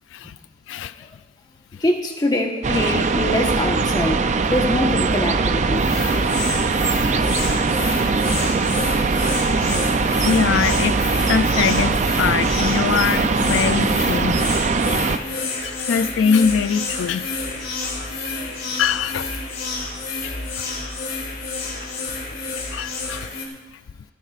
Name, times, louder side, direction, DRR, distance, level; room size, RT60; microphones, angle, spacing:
voice 1, 0.7-1.1 1.7-1.8 8.4-8.5 9.7-9.8 10.2-14.5 15.6-17.3 18.8-19.3 20.2-20.7 22.7-23.3, left 6 dB, 90° left, 14 dB, 0.3 m, -23 dB
voice 2, 1.8-4.2 4.5-5.9, left 1 dB, 20° left, 1 dB, 1.2 m, -23 dB
sound 1, 2.6-15.2, right 4 dB, 40° right, 0.5 m, -21 dB
sound 2, 5.8-23.5, left 3 dB, 50° left, 2.7 m, -29 dB
26.5 x 10.0 x 2.5 m, 1.2 s
head